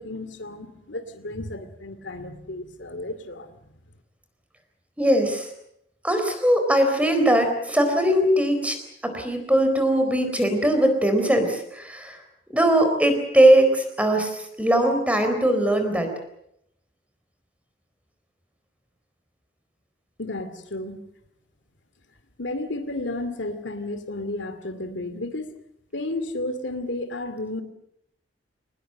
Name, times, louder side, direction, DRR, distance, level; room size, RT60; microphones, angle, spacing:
voice 1, 0.0-3.6 20.2-21.0 22.4-25.6 25.9-27.6, left 2 dB, 85° left, 10 dB, 2.4 m, -32 dB
voice 2, 5.0-5.5 6.0-8.8 9.0-12.2 12.5-14.3 14.6-16.1, right 1 dB, 10° right, 6 dB, 4.1 m, -20 dB
23.5 x 20.0 x 7.7 m, 0.76 s
head